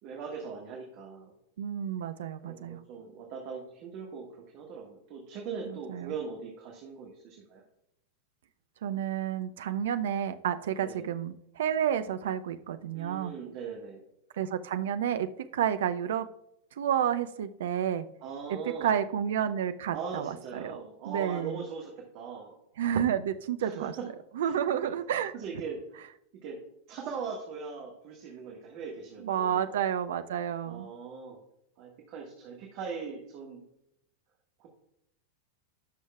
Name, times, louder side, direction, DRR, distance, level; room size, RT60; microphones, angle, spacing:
voice 1, 0.0-1.3 2.4-7.6 10.8-11.1 12.9-14.0 18.2-19.0 19.9-22.5 23.6-24.1 24.4-24.9 25.3-26.1 26.4-26.6 26.9-29.7 30.6-31.4 31.8-33.6 34.6-34.7, right 5 dB, 40° right, 0 dB, 1.6 m, -40 dB
voice 2, 1.6-2.8 5.7-6.1 8.8-13.3 14.4-16.3 16.8-18.1 18.5-20.8 21.1-21.6 22.8-23.9 24.4-25.3 29.2-30.9, right 9 dB, 60° right, 10 dB, 0.5 m, -30 dB
16.0 x 6.3 x 2.3 m, 0.79 s
figure-of-eight pair, 90°, 0 cm